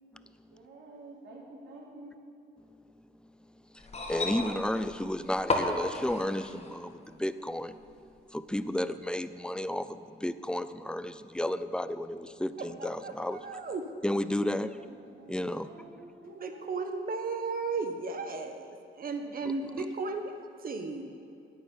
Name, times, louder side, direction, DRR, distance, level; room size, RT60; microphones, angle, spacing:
voice 1, 0.5-2.1 14.5-16.7 17.8-18.0 19.2-19.8, right 2 dB, 70° right, -3 dB, 3.5 m, -50 dB
voice 2, 3.7-7.8 8.3-13.6 14.0-14.9 15.3-15.9 19.4-19.8, left 1 dB, 5° left, 12 dB, 0.6 m, -33 dB
sound 1, 3.8-6.8 7.8-7.9, left 2 dB, 35° left, 2.0 m, -33 dB
voice 3, 13.0-13.9 16.4-18.5 19.0-20.3 20.6-21.1, right 4 dB, 45° right, 5 dB, 1.2 m, -34 dB
11.5 x 8.7 x 9.7 m, 2.5 s
cardioid pair, 90°, 20 cm